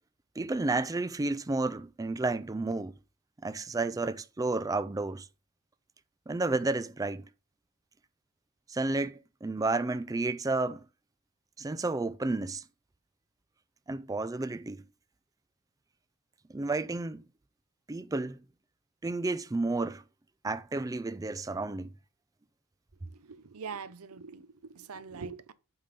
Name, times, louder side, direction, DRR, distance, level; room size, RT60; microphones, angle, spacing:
voice 1, 0.4-2.9 3.4-5.3 6.3-7.2 8.7-10.8 11.6-12.6 13.9-14.8 16.5-17.2 17.9-18.4 19.0-20.0 20.4-21.9, right 2 dB, 15° right, 0.4 m, -31 dB
voice 2, 23.0-25.5, right 5 dB, 80° right, 0.7 m, -43 dB
8.4 x 3.7 x 5.2 m
head